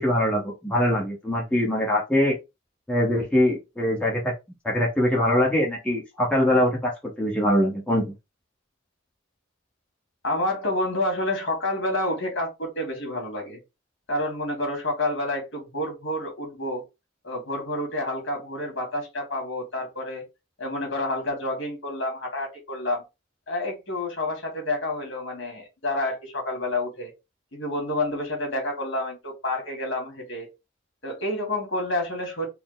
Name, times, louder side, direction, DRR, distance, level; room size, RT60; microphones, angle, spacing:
voice 1, 0.0-2.4 2.9-4.3 4.6-6.9 7.2-8.1, left 1 dB, 5° left, 0.9 m, -23 dB
voice 2, 10.2-13.6 14.1-16.8 17.2-20.2 20.6-23.0 23.5-27.1 27.5-30.5 31.0-32.5, left 1 dB, 65° left, 1.8 m, -29 dB
4.2 x 2.0 x 3.9 m
head